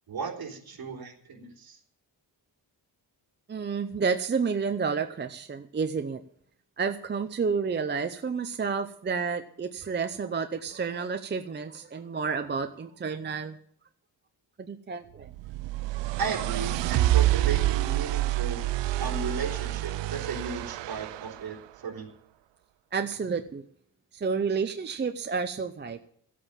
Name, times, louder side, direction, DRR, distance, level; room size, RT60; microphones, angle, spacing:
voice 1, 0.1-1.8 16.2-18.7 19.0-22.1, right 5 dB, 60° right, -1 dB, 3.5 m, -35 dB
voice 2, 3.5-6.2 6.8-13.6 14.7-15.3 22.9-23.6 24.1-26.1, right 5 dB, 25° right, 7 dB, 0.6 m, -30 dB
sound 1, 15.3-21.4, right 15 dB, 90° right, 0.5 m, -27 dB
14.5 x 8.5 x 7.2 m, 0.65 s
wide cardioid pair, 155°, 42 cm